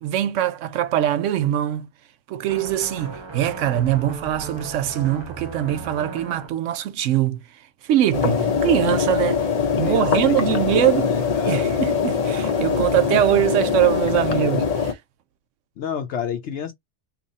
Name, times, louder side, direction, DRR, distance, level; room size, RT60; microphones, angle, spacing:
voice 1, 0.0-1.9 2.3-7.4 7.8-9.5 9.8-11.1 11.4-15.0, right 12 dB, 80° right, 0.9 m, -22 dB
sound 1, 2.5-6.5, right 3 dB, 30° right, 0.6 m, -36 dB
voice 2, 8.1-8.5 9.8-11.7 15.8-16.7, left 7 dB, 70° left, 0.9 m, -30 dB
sound 2, 8.1-14.9, left 5 dB, 40° left, 0.6 m, -22 dB
2.9 x 2.4 x 4.0 m
omnidirectional pair, 1.3 m